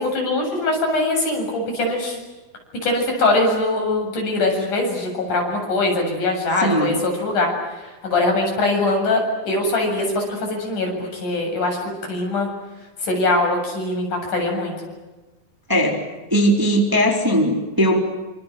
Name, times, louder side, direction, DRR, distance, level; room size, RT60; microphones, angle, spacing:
voice 1, 0.0-2.2 2.8-12.5 13.0-14.7, left 2 dB, 60° left, 2 dB, 9.0 m, -22 dB
voice 2, 6.6-7.0 15.7-16.0 16.3-18.0, equal, 5° right, 2 dB, 3.5 m, -18 dB
29.0 x 27.0 x 7.7 m, 1.2 s
omnidirectional pair, 4.0 m